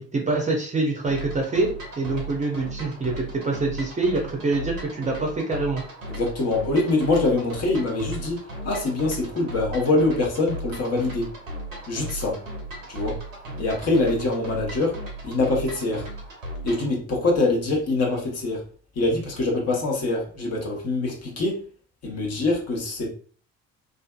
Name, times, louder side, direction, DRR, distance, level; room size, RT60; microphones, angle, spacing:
voice 1, 0.0-5.8, right 3 dB, 20° right, 0 dB, 0.6 m, -25 dB
sound 1, 1.1-16.9, right 1 dB, 85° right, 0.6 m, -36 dB
voice 2, 6.1-11.3 11.9-12.4 12.9-13.2 13.6-16.1 16.6-18.6 18.9-21.6 22.0-23.1, left 2 dB, 40° left, 0 dB, 0.9 m, -24 dB
2.5 x 2.4 x 2.2 m, 0.43 s
figure-of-eight pair, 50°, 38 cm